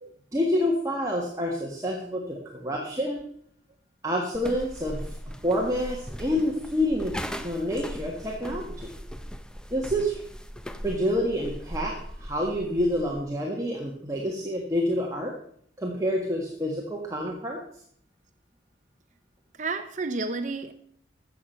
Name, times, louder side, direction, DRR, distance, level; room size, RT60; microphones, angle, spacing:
voice 1, 0.3-3.2 4.0-5.1 5.4-7.1 7.4-8.9 9.7-10.2 10.8-15.3 15.8-17.6, equal, 20° right, -1 dB, 1.4 m, -28 dB
sound 1, 4.3-13.3, equal, 5° left, 0.6 m, -39 dB
voice 2, 19.5-20.7, right 3 dB, 40° right, 9 dB, 0.7 m, -31 dB
13.5 x 7.7 x 5.6 m, 0.65 s
head